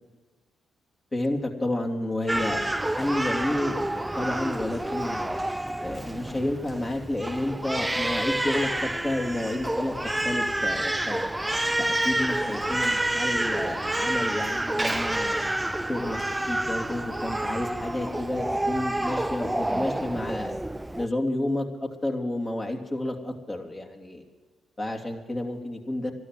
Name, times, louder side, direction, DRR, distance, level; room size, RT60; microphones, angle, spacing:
voice 1, 1.1-5.4 5.8-11.3 11.8-15.4 15.9-20.6 21.0-24.2 24.8-26.1, left 1 dB, 30° left, 3 dB, 2.8 m, -30 dB
Crying sobbing, 2.3-21.1, right 1 dB, 10° right, 0.5 m, -28 dB
12.5 x 12.5 x 7.9 m, 1.4 s
supercardioid pair, 60°, 0 cm